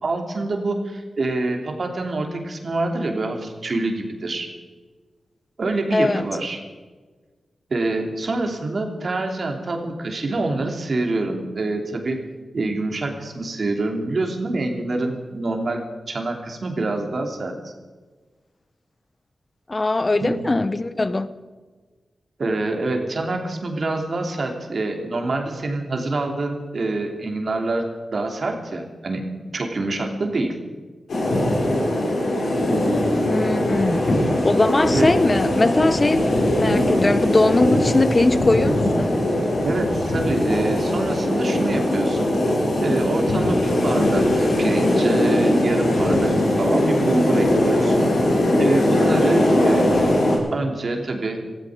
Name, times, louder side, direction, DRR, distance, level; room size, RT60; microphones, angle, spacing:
voice 1, 0.0-4.5 5.6-6.6 7.7-12.2 12.5-17.7 20.2-20.4 22.4-29.2 29.5-30.5 34.9-35.1 39.6-42.3 42.8-48.1 48.6-49.9 50.5-51.4, right 2 dB, 60° right, 3.1 m, -26 dB
voice 2, 5.9-6.2 19.7-21.3 33.2-34.0 34.4-36.3 36.5-39.2, left 2 dB, 35° left, 1.0 m, -20 dB
sound 1, 31.1-50.4, left 1 dB, 80° left, 5.3 m, -20 dB
18.5 x 15.0 x 5.1 m
cardioid pair, 55°, 0 cm